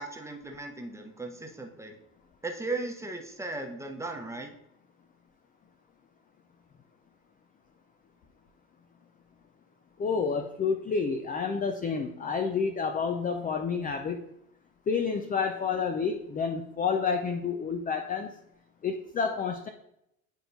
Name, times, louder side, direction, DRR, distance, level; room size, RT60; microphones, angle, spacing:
voice 1, 0.0-2.0 2.4-4.5, right 2 dB, 5° right, 3 dB, 1.0 m, -37 dB
voice 2, 10.0-14.2 14.9-18.3 18.8-19.7, left 5 dB, 20° left, 6 dB, 0.5 m, -29 dB
10.0 x 4.3 x 2.7 m, 0.80 s
hypercardioid pair, 75°, 44 cm